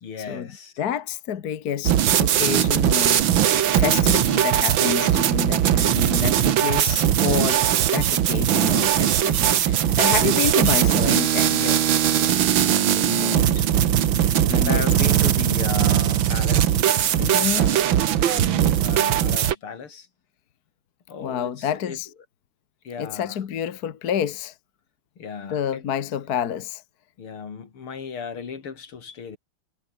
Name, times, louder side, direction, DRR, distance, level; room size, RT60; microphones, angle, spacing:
voice 1, 0.0-0.7 3.8-4.1 11.5-13.8 14.5-17.9 18.2-20.1 21.1-22.0 22.8-23.4 25.2-25.8 27.2-29.4, left 6 dB, 75° left, 3.5 m, -36 dB
voice 2, 0.8-3.2 3.7-7.6 7.9-11.6 13.0-13.5 14.3-14.8 17.1-17.7 21.2-22.1 23.0-24.5 25.5-26.8, left 9 dB, 50° left, 1.5 m, -28 dB
sound 1, 1.9-19.6, right 10 dB, 65° right, 1.9 m, -20 dB
omnidirectional pair, 2.4 m